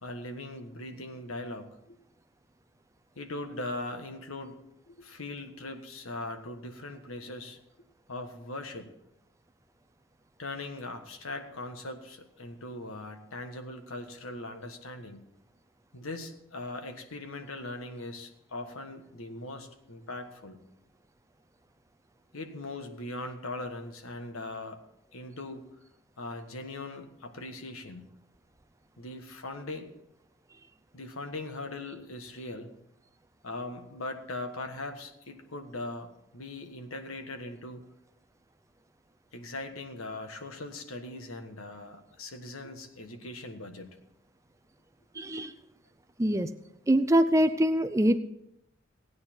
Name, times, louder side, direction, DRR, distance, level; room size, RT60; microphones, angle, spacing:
voice 1, 0.0-2.0 3.1-4.6 4.9-7.6 8.1-8.9 10.4-15.2 15.9-20.6 22.3-24.8 25.1-25.7 26.2-28.1 29.0-29.9 30.9-32.8 33.4-37.8 39.3-43.9 45.1-45.2, left 2 dB, 90° left, 7 dB, 1.4 m, -40 dB
voice 2, 45.1-45.5 46.2-46.5 46.9-48.2, right 1 dB, 15° right, 10 dB, 0.4 m, -24 dB
16.0 x 9.5 x 4.5 m, 0.82 s
head